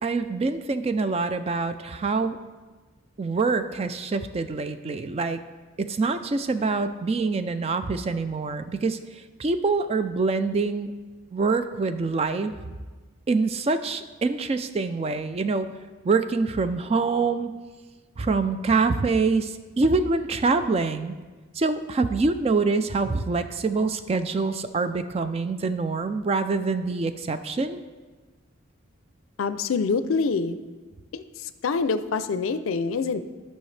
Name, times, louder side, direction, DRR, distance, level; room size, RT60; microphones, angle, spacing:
voice 1, 0.0-2.4 3.2-5.4 5.8-9.0 9.4-11.0 11.3-12.5 13.3-15.7 16.0-17.5 18.2-21.2 21.6-27.8, right 4 dB, 30° right, 10 dB, 0.3 m, -25 dB
voice 2, 29.4-30.6 31.1-31.2 31.6-33.2, left 4 dB, 80° left, 12 dB, 0.4 m, -25 dB
12.0 x 5.5 x 3.3 m, 1.3 s
head